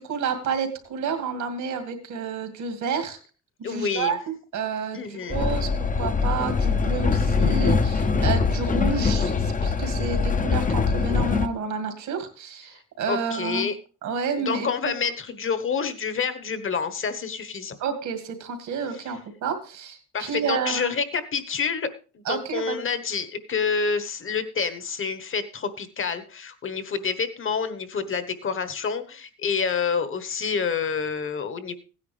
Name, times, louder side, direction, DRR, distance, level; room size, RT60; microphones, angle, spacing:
voice 1, 0.0-3.2 3.7-13.7 14.0-15.0 17.8-20.9 22.3-22.8, right 5 dB, 75° right, 6 dB, 2.3 m, -30 dB
voice 2, 3.6-4.2 4.9-5.4 13.1-13.8 14.4-17.8 20.1-21.9 22.1-31.8, left 5 dB, 45° left, 11 dB, 1.3 m, -28 dB
Train, 5.3-11.5, left 4 dB, 25° left, 0.7 m, -23 dB
15.5 x 9.6 x 3.3 m, 0.36 s
cardioid pair, 90°, 30 cm